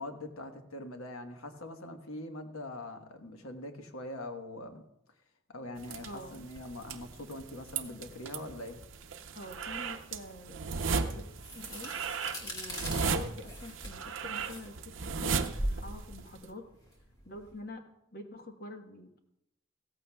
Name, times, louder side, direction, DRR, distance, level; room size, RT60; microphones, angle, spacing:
voice 1, 0.0-4.8 5.5-8.8, left 1 dB, 90° left, 5 dB, 1.2 m, -43 dB
sound 1, 5.8-16.4, right 5 dB, 65° right, 0.7 m, -36 dB
voice 2, 6.0-6.4 9.3-16.7 17.2-17.9 18.1-19.2, left 2 dB, 45° left, 4 dB, 1.1 m, -47 dB
sound 2, 10.8-17.6, equal, 20° left, 1.9 m, -40 dB
16.0 x 14.0 x 2.3 m, 0.84 s
head